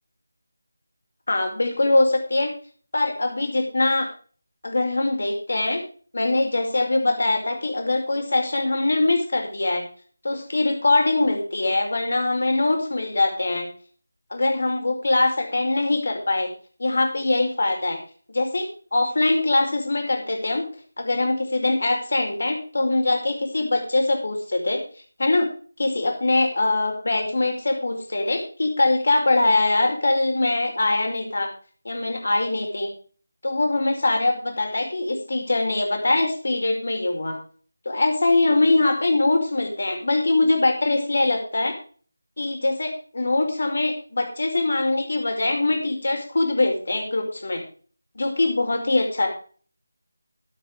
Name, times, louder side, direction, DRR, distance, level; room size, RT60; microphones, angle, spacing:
voice 1, 1.3-2.5 2.9-4.1 4.6-5.8 6.1-9.8 10.2-13.7 14.3-16.5 16.8-18.0 18.3-18.7 18.9-20.6 21.0-24.8 25.2-25.5 25.8-31.5 31.8-32.9 33.4-37.3 37.8-41.7 42.4-47.6 48.1-49.3, left 2 dB, 55° left, 3 dB, 5.0 m, -22 dB
13.5 x 9.2 x 5.1 m, 0.42 s
figure-of-eight pair, 160°, 0 cm